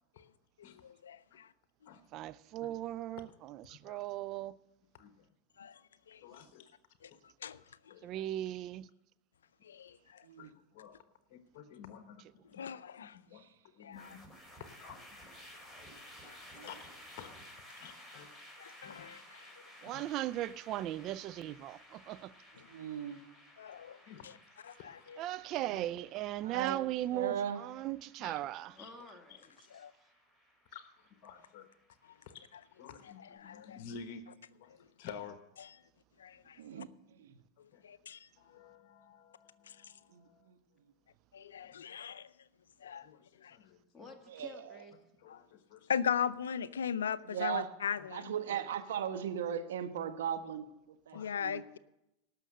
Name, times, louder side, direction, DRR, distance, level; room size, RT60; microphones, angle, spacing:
voice 1, 0.6-1.5 5.6-5.7 6.1-6.2 7.4-7.6 9.7-10.0 12.6-13.2 13.8-14.1 16.3-16.4 18.6-19.4 23.6-24.0 24.2-24.3 24.6-25.2 29.7-29.9 33.4-33.8 36.2-36.6 37.8-38.2 41.3-42.3 42.8-43.1 43.4-43.6 45.9-48.3 51.1-51.8, left 8 dB, 85° left, 0.4 m, -38 dB
voice 2, 2.1-4.5 8.0-8.9 12.2-12.3 19.8-22.3 25.2-28.8, right 14 dB, 45° right, 0.4 m, -38 dB
voice 3, 3.7-4.0 4.9-5.2 6.2-6.7 7.9-8.2 10.4-11.0 11.3-12.2 12.5-12.6 13.0-13.4 13.8-14.2 14.6-15.2 16.6-17.4 17.7-18.3 18.8-19.1 19.9-20.0 24.1-24.3 24.8-25.1 28.2-28.4 28.8-28.9 30.7-31.7 32.3-32.4 32.8-35.4 37.7-37.9 38.4-40.4 41.6-42.1 43.0-43.8 45.2-45.9 48.0-48.4 51.1-51.4, left 6 dB, 55° left, 1.2 m, -52 dB
sound 1, 13.9-33.2, equal, 5° right, 4.6 m, -56 dB
voice 4, 22.7-23.2 25.6-25.9 26.4-26.8 27.1-27.6 36.6-37.3 40.1-40.6 44.3-44.5 47.2-47.7 48.1-51.6, right 9 dB, 75° right, 1.2 m, -38 dB
voice 5, 28.7-30.1 43.9-44.9 48.4-48.8, left 3 dB, 15° left, 1.9 m, -53 dB
18.0 x 6.5 x 6.5 m
hypercardioid pair, 95°, 0 cm